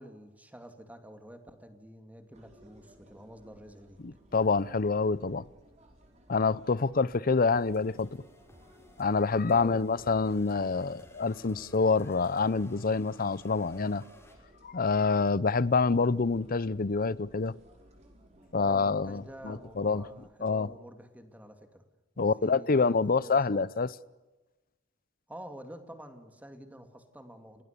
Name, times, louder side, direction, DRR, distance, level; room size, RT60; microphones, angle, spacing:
voice 1, 0.0-4.0 9.5-9.8 18.5-21.9 22.1-23.7 25.3-27.6, equal, 10° right, 2.6 m, -48 dB
sound 1, 2.3-20.3, right 1 dB, 35° right, 5.3 m, -59 dB
voice 2, 4.0-5.4 6.3-8.2 9.0-14.0 14.6-17.5 18.5-20.0 20.4-20.7 22.2-23.9, left 4 dB, 50° left, 0.7 m, -27 dB
sound 2, 7.4-14.4, left 1 dB, 15° left, 5.5 m, -57 dB
30.0 x 19.5 x 6.8 m
head